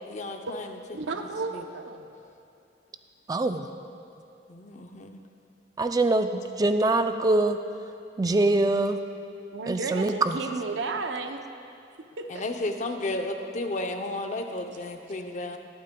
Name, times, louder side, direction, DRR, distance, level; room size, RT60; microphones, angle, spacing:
voice 1, 0.1-0.8 1.2-1.6 4.5-5.2 12.3-15.6, left 2 dB, 40° left, 5 dB, 0.6 m, -33 dB
voice 2, 0.9-2.1 9.5-11.4 12.2-12.3, right 3 dB, 80° right, 5 dB, 0.7 m, -33 dB
voice 3, 3.3-3.7 5.8-7.6 8.2-9.0 9.7-10.3, right 2 dB, 20° right, 8 dB, 0.4 m, -23 dB
21.0 x 8.6 x 2.3 m, 2.7 s
head